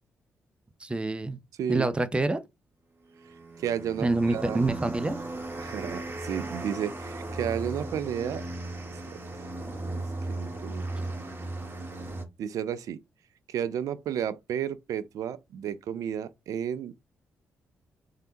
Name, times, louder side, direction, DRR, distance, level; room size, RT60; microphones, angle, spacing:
voice 1, 0.8-1.4 1.7-2.4 4.0-5.2, right 2 dB, 15° right, 0.6 m, -26 dB
sound 1, 3.1-12.2, right 2 dB, 35° right, 1.1 m, -36 dB
voice 2, 3.6-4.6 5.6-8.4 9.1-9.2 10.0-10.8 12.4-13.0 13.5-17.0, right 9 dB, 65° right, 0.4 m, -32 dB
3.2 x 2.8 x 2.7 m
hypercardioid pair, 45°, 6 cm